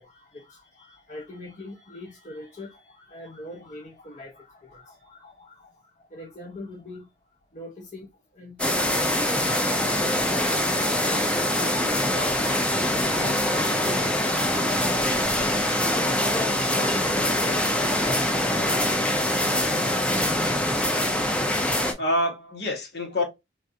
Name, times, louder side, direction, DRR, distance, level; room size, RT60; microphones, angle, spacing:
voice 1, 0.0-7.1 7.5-9.4 9.9-10.5 11.1-12.5 12.9-15.4 15.7-20.5, left 2 dB, 40° left, 0.6 m, -41 dB
sound 1, 8.6-21.9, left 1 dB, 5° left, 0.4 m, -24 dB
voice 2, 22.0-23.2, left 1 dB, 70° left, 1.1 m, -27 dB
3.2 x 2.4 x 2.6 m
head